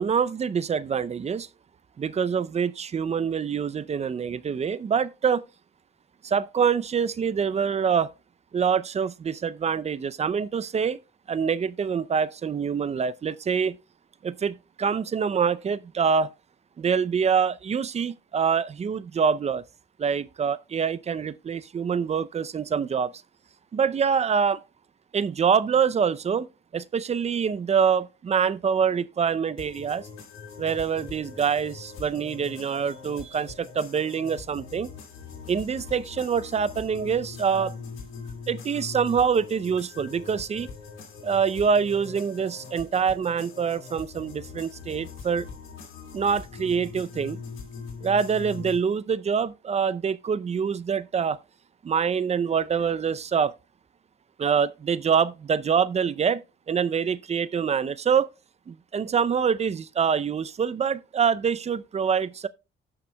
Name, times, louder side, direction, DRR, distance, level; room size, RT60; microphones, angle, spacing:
voice 1, 0.0-1.5 2.0-5.4 6.2-8.1 8.5-11.0 11.3-13.8 14.2-16.3 16.8-19.6 20.0-23.1 23.7-24.6 25.1-26.5 26.7-30.1 30.6-34.9 35.5-37.8 38.5-40.7 41.2-45.5 46.1-47.4 48.0-51.4 51.8-53.5 54.4-56.4 56.7-58.3 58.7-62.5, right 6 dB, 35° right, 0.5 m, -25 dB
sound 1, 29.6-48.8, left 5 dB, 85° left, 2.5 m, -42 dB
17.5 x 5.9 x 2.2 m
cardioid pair, 90°, 20 cm